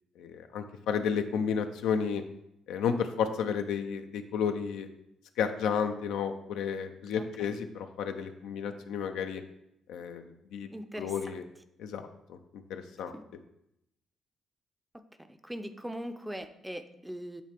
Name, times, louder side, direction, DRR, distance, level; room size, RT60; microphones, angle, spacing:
voice 1, 0.2-2.2 2.7-4.9 5.4-9.4 9.9-10.2 10.5-10.7 11.0-11.4 11.8-12.4 12.7-13.1, left 7 dB, 90° left, 7 dB, 0.5 m, -32 dB
voice 2, 7.2-7.6 10.7-11.4 13.1-13.2 15.2-17.4, equal, 5° right, 9 dB, 0.4 m, -41 dB
8.4 x 3.3 x 3.4 m, 0.80 s
cardioid pair, 90°, 0 cm